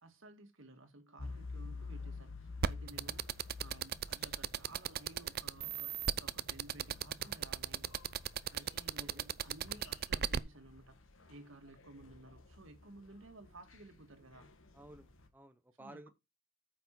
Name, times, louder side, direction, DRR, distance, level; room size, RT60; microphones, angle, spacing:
voice 1, 0.0-3.3 3.6-7.9 8.5-11.0 11.3-14.5 15.8-16.1, right 2 dB, 65° right, 1.9 m, -55 dB
sound 1, 1.2-15.3, left 3 dB, 65° left, 1.6 m, -50 dB
sound 2, 2.6-10.4, right 9 dB, 50° right, 0.4 m, -35 dB
voice 2, 8.9-9.3 14.7-16.1, right 1 dB, 10° right, 0.6 m, -55 dB
9.0 x 5.8 x 4.5 m
head